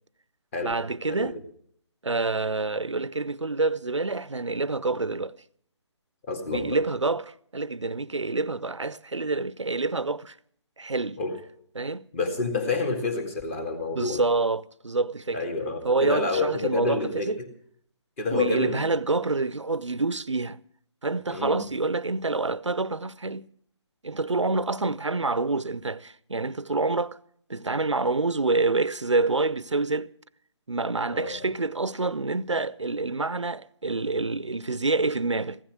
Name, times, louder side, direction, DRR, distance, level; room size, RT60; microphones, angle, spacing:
voice 1, 0.6-1.4 2.0-5.4 6.5-10.4 10.8-11.2 11.8-12.1 14.0-15.4 15.8-17.4 18.3-20.6 21.0-23.5 24.0-27.2 27.5-30.1 30.7-35.6, right 3 dB, 85° right, 0.6 m, -27 dB
voice 2, 6.2-6.8 11.2-11.3 12.1-14.2 15.3-17.5 18.2-18.8 21.3-21.6 31.1-31.4, left 3 dB, 25° left, 2.3 m, -28 dB
15.5 x 13.0 x 6.3 m
figure-of-eight pair, 145°, 15 cm